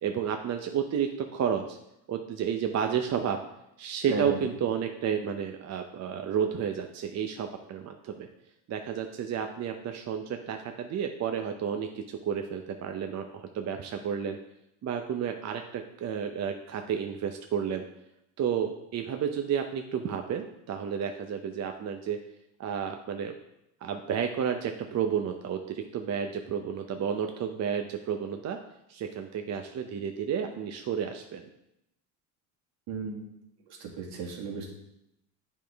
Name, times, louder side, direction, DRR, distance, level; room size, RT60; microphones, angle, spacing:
voice 1, 0.0-1.8 2.1-3.4 3.8-8.3 8.7-14.4 14.8-17.8 18.4-22.2 22.6-23.3 23.8-28.6 28.9-31.4, right 8 dB, 35° right, 5 dB, 0.6 m, -31 dB
voice 2, 4.1-4.4 32.9-33.3 33.7-34.7, right 4 dB, 65° right, 1 dB, 1.9 m, -35 dB
8.5 x 5.2 x 3.4 m, 0.82 s
supercardioid pair, 100°, 44 cm